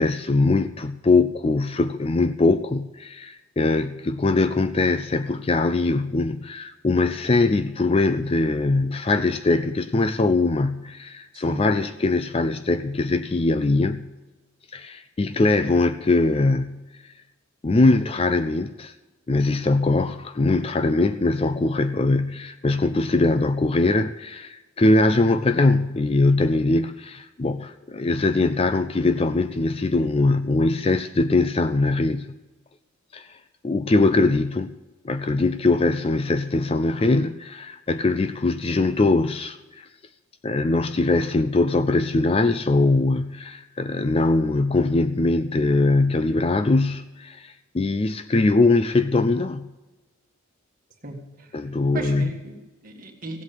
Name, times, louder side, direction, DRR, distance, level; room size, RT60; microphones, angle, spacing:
voice 1, 0.0-14.1 14.7-16.8 17.6-18.9 19.3-32.4 33.1-33.4 33.6-34.8 35.0-39.9 40.4-49.7 51.5-52.3, left 2 dB, 25° left, 0.4 m, -22 dB
voice 2, 51.0-51.5 51.9-53.4, right 2 dB, 40° right, 1.9 m, -36 dB
16.0 x 8.1 x 6.8 m
head